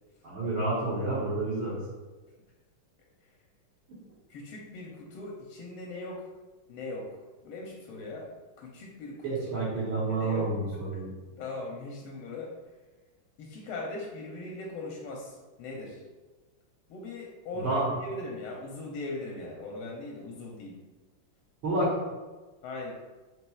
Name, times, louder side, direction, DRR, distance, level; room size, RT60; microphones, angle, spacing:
voice 1, 0.2-1.8 9.2-11.1 17.5-17.9 21.6-21.9, right 2 dB, 65° right, -9 dB, 1.7 m, -29 dB
voice 2, 4.3-6.3 6.7-7.1 7.4-8.3 8.6-9.3 10.1-10.5 11.4-12.5 13.4-16.0 16.9-20.8 22.6-22.9, left 2 dB, 90° left, -2 dB, 1.5 m, -39 dB
6.2 x 2.9 x 2.3 m, 1.3 s
omnidirectional pair, 2.4 m